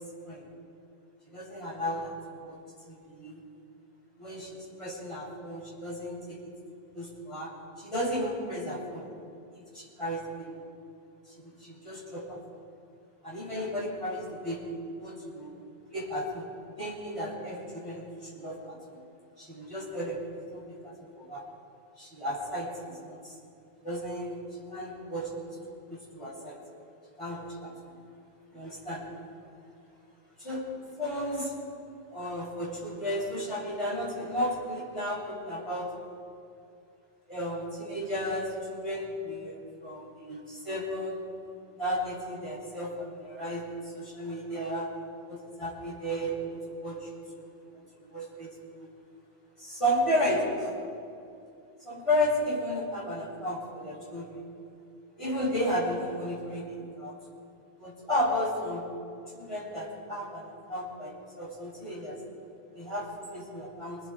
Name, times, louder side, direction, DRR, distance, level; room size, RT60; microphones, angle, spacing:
voice 1, 1.3-2.6 2.9-3.4 4.2-6.4 6.9-7.5 7.8-9.1 9.5-10.5 11.4-12.4 13.2-15.5 15.9-16.5 16.8-19.0 19.4-21.4 22.0-23.3 23.8-24.4 24.7-25.6 25.9-26.6 27.2-27.7 28.5-29.0 30.4-30.7 31.0-31.5 32.1-35.9 37.3-41.3 41.8-43.6 43.9-44.9 45.3-47.1 47.4-47.5 48.1-48.5 48.7-48.9 49.6-50.7 51.8-54.4 55.2-57.2 57.8-58.8 59.3-62.2 62.7-64.0, equal, 30° left, -6 dB, 6.9 m, -33 dB
28.0 x 20.5 x 4.7 m, 2.5 s
omnidirectional pair, 1.1 m